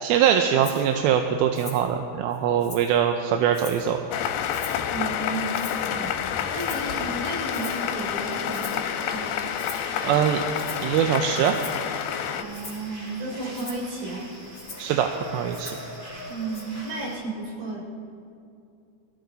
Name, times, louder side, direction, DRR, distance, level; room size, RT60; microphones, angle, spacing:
voice 1, 0.0-4.0 10.0-10.4 10.8-11.6 14.8-15.8, right 9 dB, 85° right, 5 dB, 2.5 m, -22 dB
Rattle (instrument), 0.6-0.9 1.5-1.9 2.3-3.0 3.5-3.9 4.5-4.9 5.5-6.0 6.6-6.9 7.5-7.9 8.5-8.9 9.6-9.9 10.5-10.9 11.5-11.9 12.5-12.9 13.5-13.9 14.5-14.9 15.5-15.9 16.5-16.6, left 3 dB, 25° left, 2.9 m, -42 dB
sound 1, 4.1-12.4, left 9 dB, 85° left, 2.8 m, -29 dB
voice 2, 4.9-9.5 12.3-14.3 16.3-17.8, right 2 dB, 65° right, -3 dB, 4.9 m, -34 dB
sound 2, 6.5-17.2, equal, 30° right, 4.8 m, -42 dB
22.0 x 15.0 x 4.0 m, 2.5 s
omnidirectional pair, 4.4 m